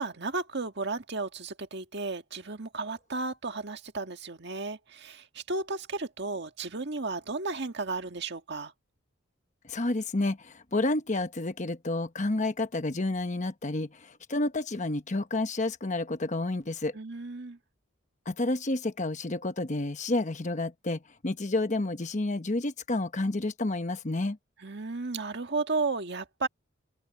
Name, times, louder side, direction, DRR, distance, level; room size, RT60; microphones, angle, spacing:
voice 1, 0.0-8.7 16.9-17.6 24.6-26.5, right 3 dB, 55° right, 1.8 m, -34 dB
voice 2, 9.7-13.9 14.3-16.9 18.3-24.4, left 2 dB, 35° left, 1.0 m, -30 dB
open air
head